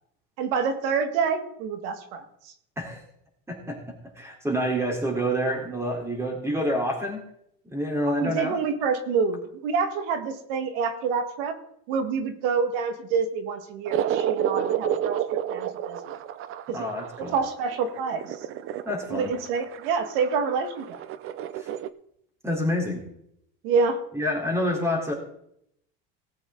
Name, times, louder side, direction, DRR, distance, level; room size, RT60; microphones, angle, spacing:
voice 1, 0.4-2.5 8.1-11.6 11.9-16.2 16.7-16.9 17.2-18.4 19.1-21.0 23.6-24.0, right 5 dB, 80° right, 8 dB, 1.8 m, -27 dB
voice 2, 3.5-7.3 7.6-8.6 16.7-17.4 18.9-19.3 21.6-21.7 22.4-23.0 24.1-25.1, equal, 10° right, 0 dB, 3.8 m, -28 dB
sound 1, 13.9-21.9, right 10 dB, 45° right, 0.7 m, -30 dB
18.0 x 8.1 x 3.9 m, 0.74 s
supercardioid pair, 115°, 29 cm